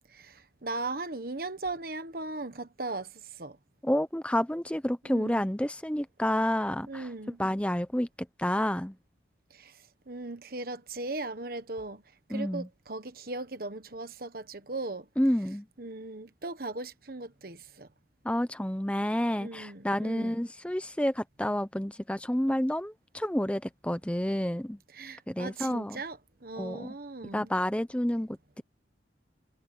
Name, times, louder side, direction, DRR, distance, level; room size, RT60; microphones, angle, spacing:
voice 1, 0.1-3.1 3.4-3.6 5.0-5.5 6.9-7.4 9.6-9.7 10.1-12.0 12.3-15.1 15.8-17.9 19.4-20.4 24.9-27.5, right 2 dB, 50° right, 1.4 m, -38 dB
voice 2, 3.8-7.1 7.4-8.1 8.4-9.0 12.3-12.7 15.2-15.7 18.2-24.8 25.3-26.0 26.6-26.9 27.3-28.6, equal, 5° left, 0.8 m, -29 dB
head